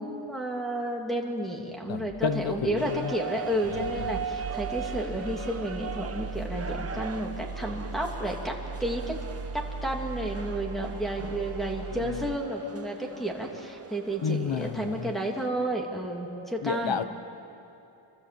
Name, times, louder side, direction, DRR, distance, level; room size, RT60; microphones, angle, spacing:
voice 1, 0.0-8.5 8.8-9.2 9.5-17.0, right 1 dB, ahead, 0 dB, 2.9 m, -31 dB
voice 2, 1.9-3.1 3.7-4.2 11.9-12.3 14.2-15.1 16.6-17.0, left 6 dB, 65° left, 10 dB, 1.1 m, -31 dB
sound 1, 2.1-12.4, right 4 dB, 75° right, 1.7 m, -39 dB
sound 2, 2.8-15.5, right 7 dB, 30° right, 1.0 m, -41 dB
30.0 x 25.0 x 7.8 m, 2.9 s
wide cardioid pair, 165°, 48 cm